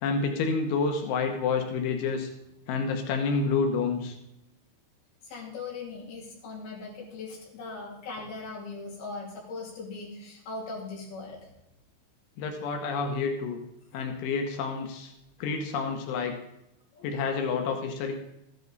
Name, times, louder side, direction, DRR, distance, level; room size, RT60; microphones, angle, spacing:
voice 1, 0.0-2.3 2.7-4.2 12.4-13.6 13.9-15.1 15.4-16.4 17.0-18.1, left 4 dB, 85° left, 4 dB, 3.6 m, -28 dB
voice 2, 5.2-11.5 16.9-17.1, left 3 dB, 55° left, -4 dB, 4.7 m, -39 dB
14.5 x 10.5 x 4.0 m, 0.85 s
omnidirectional pair, 5.4 m